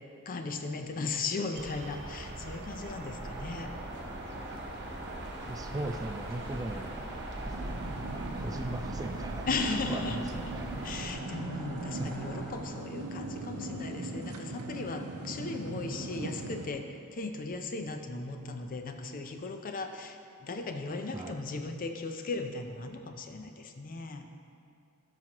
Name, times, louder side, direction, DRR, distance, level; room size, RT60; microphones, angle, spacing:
voice 1, 0.3-3.7 9.5-10.6 10.8-24.3, left 3 dB, 40° left, 6 dB, 0.5 m, -37 dB
sound 1, 1.5-11.1, right 1 dB, 50° right, 0.8 m, -41 dB
sound 2, 2.8-12.6, right 1 dB, ahead, 1.4 m, -44 dB
voice 2, 5.5-7.2 7.5-7.6 8.1-9.5 9.9-10.8 12.0-12.1 21.1-21.4, right 2 dB, 15° right, 5 dB, 0.3 m, -38 dB
sound 3, 7.5-16.7, right 2 dB, 80° right, 0.7 m, -40 dB
12.0 x 6.0 x 3.0 m, 2.5 s
head